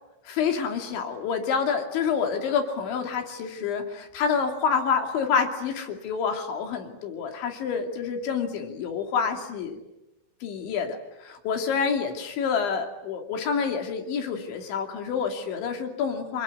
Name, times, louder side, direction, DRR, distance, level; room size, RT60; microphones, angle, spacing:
voice 1, 0.3-9.8 10.4-16.4, left 6 dB, 70° left, 5 dB, 4.9 m, -28 dB
27.0 x 22.0 x 9.5 m, 0.95 s
omnidirectional pair, 5.7 m